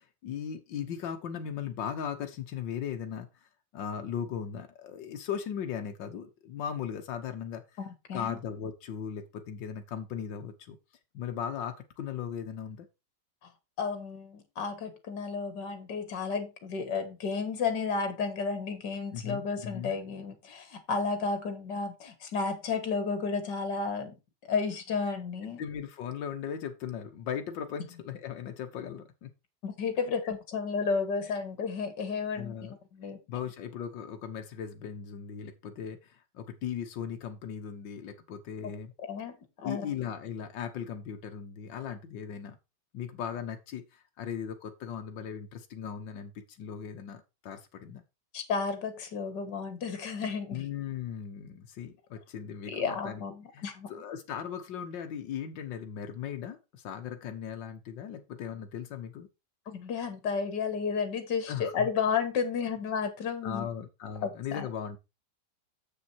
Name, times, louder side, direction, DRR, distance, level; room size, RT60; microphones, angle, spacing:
voice 1, 0.0-7.8 8.1-10.8 11.1-12.9 19.1-19.9 25.6-29.3 30.2-30.4 32.4-32.8 33.3-38.9 39.6-42.6 42.9-48.0 50.5-53.2 53.5-59.3 61.5-61.9 63.4-65.0, left 8 dB, 85° left, 5 dB, 1.7 m, -38 dB
voice 2, 7.8-8.4 13.8-24.2 24.5-25.6 29.6-32.5 32.9-33.2 39.1-39.9 48.3-50.6 52.7-53.9 59.7-63.7 64.2-64.7, left 5 dB, 70° left, 9 dB, 2.3 m, -32 dB
7.5 x 7.0 x 4.4 m, 0.26 s
omnidirectional pair, 1.9 m